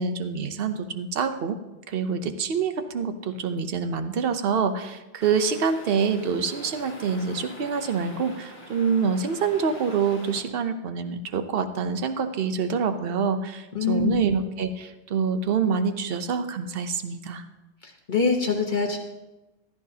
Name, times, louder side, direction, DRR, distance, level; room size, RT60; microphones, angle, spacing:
voice 1, 0.0-1.6 1.9-17.5, right 5 dB, 60° right, 9 dB, 1.0 m, -26 dB
sound 1, 5.2-10.4, left 1 dB, 60° left, 1.9 m, -44 dB
voice 2, 13.7-14.2 17.8-19.0, left 4 dB, 45° left, 2 dB, 1.2 m, -24 dB
15.0 x 13.0 x 2.8 m, 1.0 s
omnidirectional pair, 1.2 m